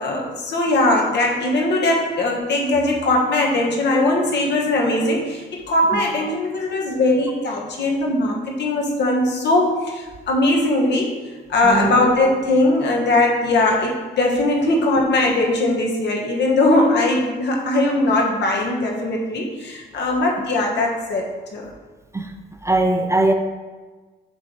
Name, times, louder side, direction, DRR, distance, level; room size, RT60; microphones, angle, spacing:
voice 1, 0.0-11.1 11.5-21.7, left 2 dB, 60° left, -1 dB, 1.3 m, -20 dB
voice 2, 22.6-23.3, right 2 dB, 15° right, 5 dB, 0.4 m, -20 dB
6.0 x 3.2 x 5.3 m, 1.3 s
cardioid pair, 90°, 20 cm